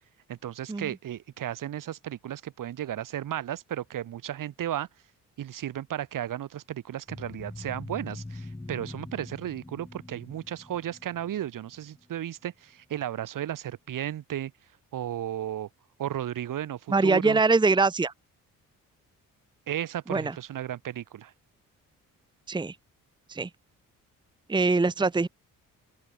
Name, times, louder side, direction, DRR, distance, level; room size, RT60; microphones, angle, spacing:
voice 1, 0.3-4.9 5.4-14.5 14.9-15.7 16.0-17.4 19.7-21.3, right 11 dB, 70° right, 2.8 m, -34 dB
sound 1, 7.1-12.2, left 2 dB, 10° left, 1.9 m, -43 dB
voice 2, 16.9-18.1 20.1-20.3 22.5-22.7 23.3-23.5 24.5-25.3, right 3 dB, 15° right, 0.9 m, -23 dB
open air
cardioid pair, 90°, 33 cm